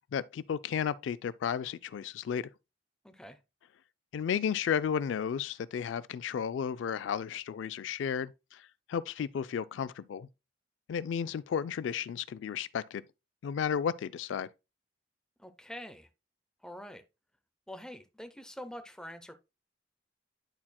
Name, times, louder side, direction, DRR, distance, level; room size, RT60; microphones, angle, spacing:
voice 1, 0.1-2.4 4.1-8.6 8.9-10.3 10.9-13.0 13.4-14.5, left 7 dB, 80° left, 0.3 m, -33 dB
voice 2, 3.0-3.4 15.4-16.1 16.6-17.0 17.7-19.3, equal, 5° left, 0.6 m, -45 dB
10.5 x 4.3 x 2.2 m
head